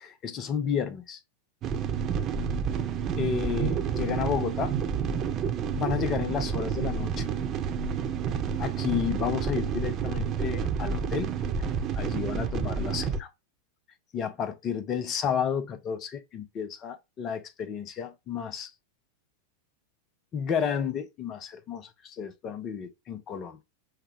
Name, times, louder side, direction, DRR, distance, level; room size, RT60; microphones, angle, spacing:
voice 1, 0.0-1.2 3.2-4.7 5.7-7.3 8.6-11.3 12.0-13.3 14.1-18.7 20.3-23.6, left 7 dB, 30° left, 0.7 m, -31 dB
sound 1, 1.6-13.2, right 6 dB, 30° right, 0.5 m, -29 dB
5.6 x 2.3 x 3.5 m
figure-of-eight pair, 90°, 0 cm